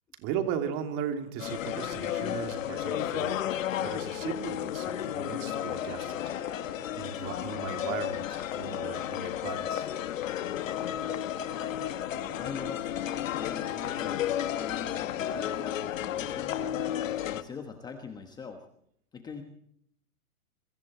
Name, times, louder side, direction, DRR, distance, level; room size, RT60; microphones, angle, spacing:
voice 1, 0.2-3.4 3.8-9.9, right 8 dB, 30° right, 7 dB, 2.9 m, -37 dB
sound 1, 1.4-17.4, left 11 dB, 60° left, 1.9 m, -33 dB
voice 2, 12.4-12.9 13.3-16.6 17.3-18.6 19.1-19.4, left 5 dB, 10° left, 5 dB, 1.3 m, -42 dB
26.5 x 23.5 x 4.4 m, 0.68 s
hypercardioid pair, 160°, 44 cm